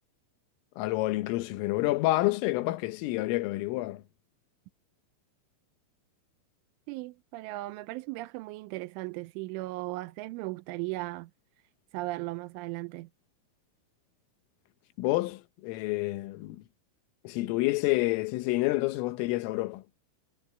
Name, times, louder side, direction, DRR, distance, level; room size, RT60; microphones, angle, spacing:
voice 1, 0.8-4.0 15.0-16.6 17.3-19.8, left 19 dB, 85° left, 3.7 m, -28 dB
voice 2, 6.9-11.3 11.9-13.1, right 20 dB, 85° right, 3.1 m, -37 dB
omnidirectional pair, 5.7 m